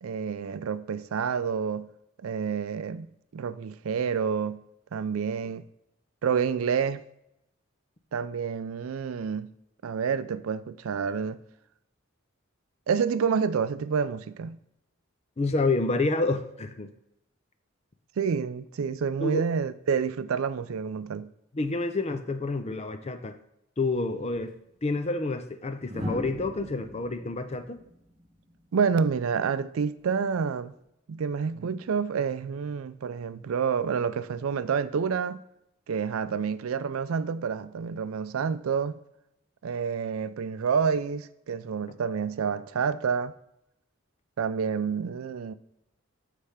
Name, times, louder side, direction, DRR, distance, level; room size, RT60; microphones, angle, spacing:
voice 1, 0.0-1.9 2.2-3.1 3.3-4.6 4.9-5.6 6.2-7.0 8.1-9.5 9.8-11.4 12.9-14.6 18.2-21.3 28.7-30.7 31.1-35.4 35.9-39.0 39.6-43.3 44.4-45.5, right 6 dB, 85° right, 0.4 m, -28 dB
voice 2, 15.4-16.9 19.2-19.4 21.5-23.4 23.8-24.5 24.8-27.8, left 3 dB, 30° left, 0.5 m, -28 dB
sound 1, 24.3-24.5 25.8-28.9 30.5-30.8, equal, 35° right, 1.9 m, -39 dB
8.3 x 3.4 x 5.7 m
head